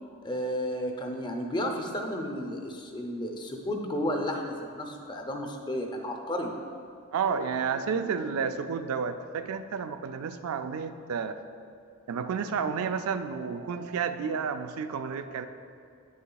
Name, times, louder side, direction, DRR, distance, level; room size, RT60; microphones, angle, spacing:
voice 1, 0.2-6.5, equal, 20° left, 3 dB, 0.6 m, -32 dB
voice 2, 7.1-11.4 12.1-15.5, right 6 dB, 85° right, 9 dB, 0.4 m, -31 dB
9.2 x 6.9 x 2.3 m, 2.4 s
head